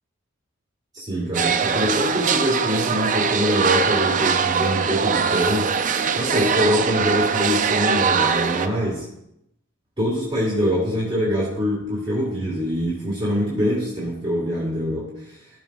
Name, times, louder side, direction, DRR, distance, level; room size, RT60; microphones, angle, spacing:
voice 1, 0.9-5.7 6.1-9.1 10.0-15.4, equal, 20° right, -7 dB, 2.9 m, -24 dB
sound 1, 1.3-8.7, right 6 dB, 35° right, 0.5 m, -22 dB
14.5 x 7.3 x 2.5 m, 0.80 s
head